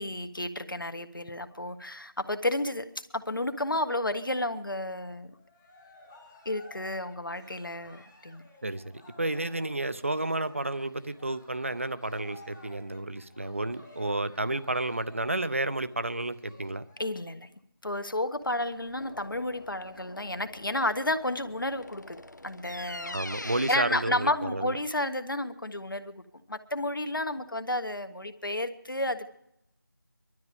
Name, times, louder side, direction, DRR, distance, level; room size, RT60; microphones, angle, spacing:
voice 1, 0.0-2.9 3.1-5.3 6.4-8.4 17.0-17.5 17.8-22.2 22.4-26.1 26.5-29.3, left 1 dB, 70° left, 9 dB, 1.5 m, -31 dB
Cheering, 5.3-17.1, left 1 dB, 10° left, 0.9 m, -54 dB
voice 2, 8.6-16.8 23.1-24.8, right 2 dB, 35° right, 14 dB, 0.6 m, -31 dB
sound 1, 18.4-23.8, left 2 dB, 55° left, 0.9 m, -44 dB
21.0 x 12.5 x 5.1 m, 0.80 s
figure-of-eight pair, 170°, 11 cm